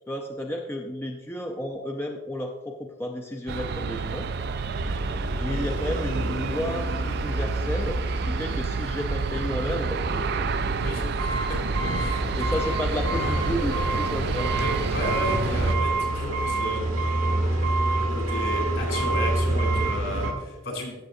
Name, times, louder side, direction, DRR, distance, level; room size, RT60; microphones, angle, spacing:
voice 1, 0.1-4.3 5.4-10.5 12.3-14.5 20.3-20.4, left 1 dB, 10° left, 2 dB, 0.5 m, -32 dB
Aircraft, 3.5-15.7, right 5 dB, 50° right, 0.4 m, -30 dB
sound 1, 4.8-20.3, right 1 dB, 90° right, 1.6 m, -28 dB
voice 2, 14.5-17.0 18.0-20.9, equal, 65° left, 0 dB, 3.4 m, -33 dB
14.5 x 6.8 x 2.7 m, 1.2 s
head